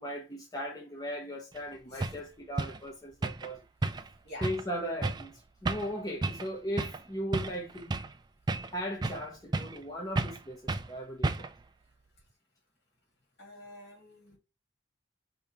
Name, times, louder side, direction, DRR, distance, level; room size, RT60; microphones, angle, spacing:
voice 1, 0.0-3.6 4.4-8.0 8.7-11.5, equal, 20° left, 0.7 m, -38 dB
sound 1, 1.6-1.7 2.0-2.2 2.6-2.8 3.2-3.5 3.8-4.1 4.4-4.6 5.0-5.3 5.7-5.9 6.2-6.5 6.8-7.0 7.3-8.2 8.5-9.3 9.5-9.8 10.2-10.4 10.7-10.9 11.2-11.6, right 2 dB, 20° right, 0.3 m, -32 dB
voice 2, 13.4-14.4, left 1 dB, 55° left, 2.6 m, -47 dB
5.3 x 2.8 x 3.4 m
head